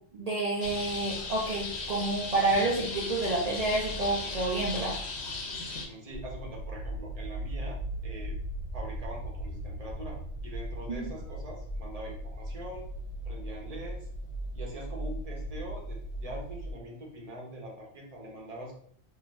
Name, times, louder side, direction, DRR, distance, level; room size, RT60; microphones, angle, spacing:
voice 1, 0.1-5.0 10.9-11.0, right 2 dB, 80° right, -3 dB, 0.3 m, -29 dB
sound 1, 0.6-5.9, left 3 dB, 65° left, 0.8 m, -36 dB
voice 2, 5.8-8.4 8.7-10.2 10.4-12.9 13.2-14.1 14.5-18.8, right 1 dB, 35° right, -1 dB, 0.7 m, -43 dB
sound 2, 6.1-16.7, right 1 dB, 90° left, 1.0 m, -38 dB
2.7 x 2.5 x 3.1 m, 0.62 s
omnidirectional pair, 1.3 m